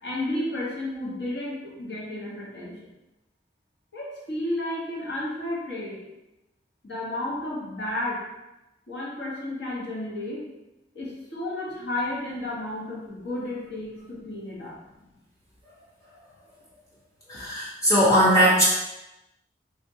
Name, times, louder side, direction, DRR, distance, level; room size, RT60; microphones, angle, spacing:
voice 1, 0.0-2.8 3.9-6.0 6.8-8.2 8.9-10.5 10.9-14.8, left 1 dB, 80° left, -5 dB, 1.1 m, -32 dB
voice 2, 17.3-18.6, equal, 20° left, -8 dB, 0.7 m, -19 dB
3.5 x 2.5 x 2.7 m, 0.97 s
head